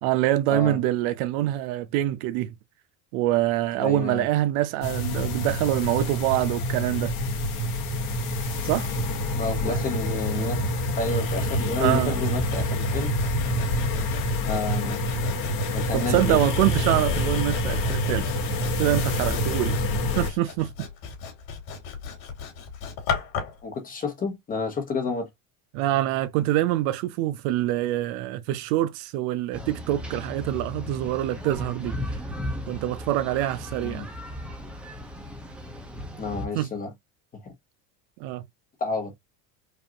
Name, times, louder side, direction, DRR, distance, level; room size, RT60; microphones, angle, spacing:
voice 1, 0.0-2.5 3.1-7.1 8.6-8.9 9.6-9.8 10.5-10.7 11.8-12.1 15.9-18.3 18.8-19.8 20.2-20.9 25.7-31.9 32.7-34.1 36.5-36.7 38.2-38.4, right 14 dB, 65° right, 0.7 m, -25 dB
voice 2, 3.8-4.3 9.4-13.1 14.4-15.0 15.7-16.4 23.6-25.3 33.8-34.1 36.2-36.9 37.4-37.5 38.8-39.1, left 4 dB, 20° left, 1.0 m, -30 dB
sound 1, 4.8-20.3, left 1 dB, 50° left, 1.3 m, -27 dB
Sawing, 12.2-23.6, left 6 dB, 70° left, 2.7 m, -37 dB
sound 2, 29.5-36.5, left 1 dB, 5° right, 0.6 m, -36 dB
5.0 x 2.6 x 2.7 m
cardioid pair, 170°, 44 cm